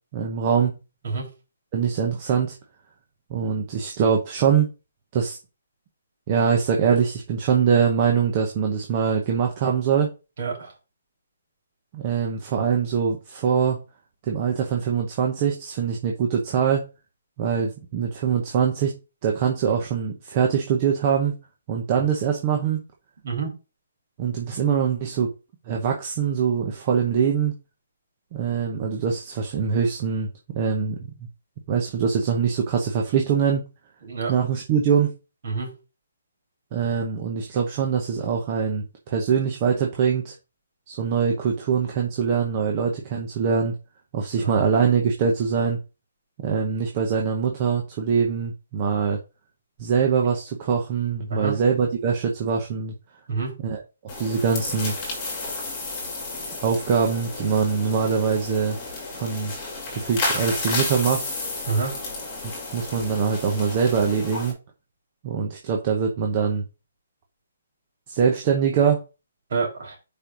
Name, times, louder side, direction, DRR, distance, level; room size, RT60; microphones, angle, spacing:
voice 1, 0.1-0.8 1.7-2.5 3.3-4.7 5.1-5.4 6.3-10.1 11.9-13.8 14.2-16.8 17.4-19.0 19.2-21.3 21.7-22.8 24.2-25.3 25.7-27.5 28.3-30.3 30.5-31.1 31.7-33.6 34.3-35.1 36.7-40.3 40.9-43.7 44.1-45.8 46.4-49.2 49.8-52.9 53.6-53.8 54.2-54.9 56.6-58.8 59.1-59.5 59.9-61.3 62.4-64.6 65.2-66.6 68.1-69.0, right 6 dB, 20° right, 1 dB, 0.8 m, -23 dB
voice 2, 10.4-10.7 22.0-22.1 23.2-23.5 34.0-34.3 35.4-35.7 44.4-44.6 51.3-51.5 53.3-53.5 61.7-62.0 69.5-70.0, right 4 dB, 40° right, -1 dB, 3.6 m, -27 dB
sound 1, 54.1-64.5, left 3 dB, 15° left, 2.4 m, -32 dB
5.1 x 4.4 x 6.0 m, 0.30 s
hypercardioid pair, 180°, 0 cm